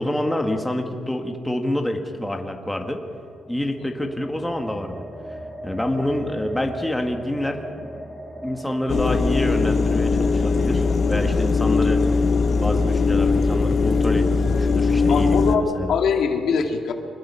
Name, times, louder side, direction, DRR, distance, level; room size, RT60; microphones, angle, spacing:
voice 1, 0.0-3.0 3.5-5.0 5.6-7.6 8.4-12.2 12.5-15.9, left 1 dB, 5° left, 3 dB, 1.7 m, -27 dB
sound 1, 2.6-12.7, right 1 dB, 10° right, 1.6 m, -40 dB
sound 2, 8.9-15.6, left 4 dB, 45° left, 0.8 m, -20 dB
voice 2, 15.1-16.9, left 6 dB, 70° left, 4 dB, 2.0 m, -23 dB
24.0 x 20.5 x 5.6 m, 2.3 s
cardioid pair, 115°, 0 cm